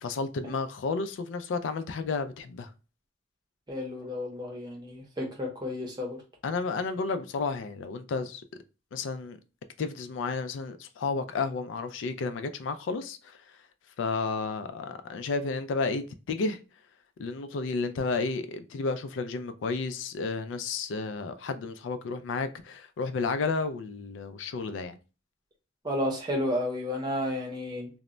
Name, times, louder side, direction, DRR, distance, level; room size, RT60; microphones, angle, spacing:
voice 1, 0.0-2.7 6.4-8.4 8.9-9.4 9.8-13.4 14.0-16.6 17.2-25.0, left 4 dB, 80° left, 0.3 m, -32 dB
voice 2, 3.7-6.2 25.8-27.9, left 1 dB, 20° right, 0.6 m, -32 dB
2.1 x 2.0 x 3.7 m
head